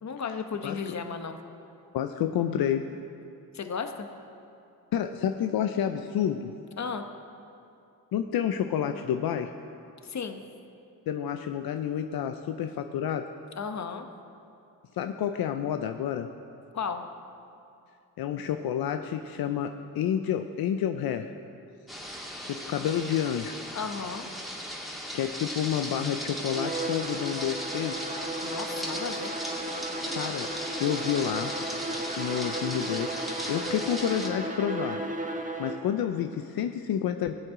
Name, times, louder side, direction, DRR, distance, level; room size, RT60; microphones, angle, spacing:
voice 1, 0.0-1.4 3.5-4.1 6.8-7.1 10.0-10.4 13.6-14.1 16.7-17.0 23.7-24.3 28.4-29.3, left 5 dB, 50° left, 7 dB, 1.0 m, -34 dB
voice 2, 1.9-2.9 4.9-6.5 8.1-9.5 11.1-13.3 14.9-16.3 18.2-21.3 22.4-23.6 25.1-28.0 30.2-30.5 30.8-31.5 32.2-35.0 35.6-37.3, left 9 dB, 80° left, 7 dB, 0.6 m, -29 dB
sound 1, 21.9-34.3, equal, ahead, 2.2 m, -37 dB
Bowed string instrument, 26.4-35.9, right 2 dB, 20° right, 1.3 m, -35 dB
18.5 x 7.9 x 3.7 m, 2.6 s
cardioid pair, 60°, 36 cm